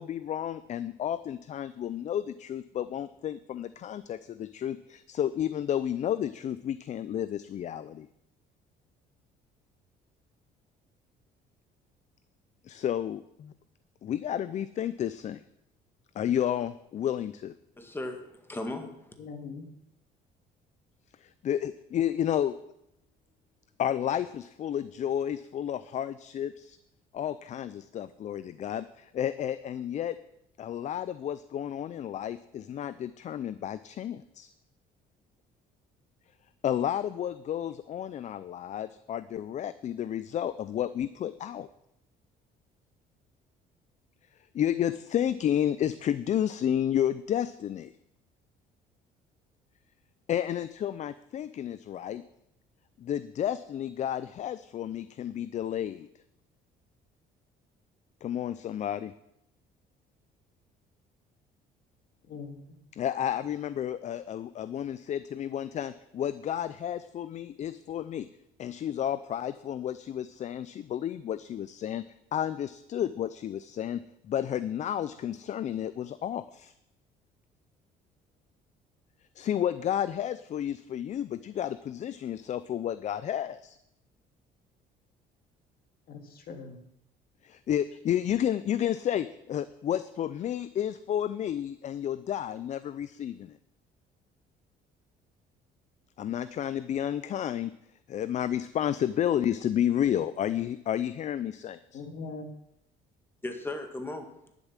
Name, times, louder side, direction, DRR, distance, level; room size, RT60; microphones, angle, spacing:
voice 1, 0.0-8.1 12.6-13.5 14.0-15.4 16.2-17.5 21.2-22.5 23.8-26.8 27.1-30.2 30.6-34.5 36.6-41.7 44.5-47.9 50.3-52.2 53.0-56.1 58.2-59.1 63.0-68.3 68.6-72.0 72.3-76.7 79.4-83.8 87.4-93.6 96.2-97.7 98.1-102.0, left 10 dB, 45° left, 15 dB, 0.5 m, -31 dB
voice 2, 17.8-18.9 103.4-104.3, left 2 dB, 15° left, 5 dB, 1.8 m, -36 dB
voice 3, 19.2-19.6 62.3-62.6 86.1-86.8 101.9-102.5, left 4 dB, 60° left, 5 dB, 2.1 m, -41 dB
11.5 x 7.3 x 7.5 m, 0.80 s
cardioid pair, 110°, 17 cm